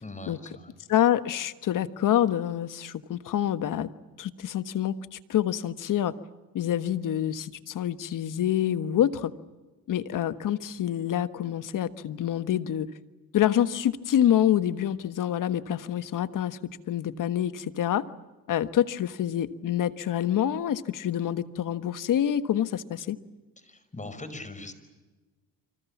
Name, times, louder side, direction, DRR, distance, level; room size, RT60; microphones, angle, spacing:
voice 1, 0.0-0.7 23.7-24.7, left 2 dB, 20° left, 11 dB, 5.4 m, -41 dB
voice 2, 0.9-3.9 4.2-6.1 6.5-9.3 9.9-12.9 13.3-16.6 16.9-18.0 18.5-23.2, left 11 dB, 60° left, 13 dB, 1.4 m, -26 dB
28.5 x 26.0 x 7.3 m, 1.2 s
cardioid pair, 85°, 35 cm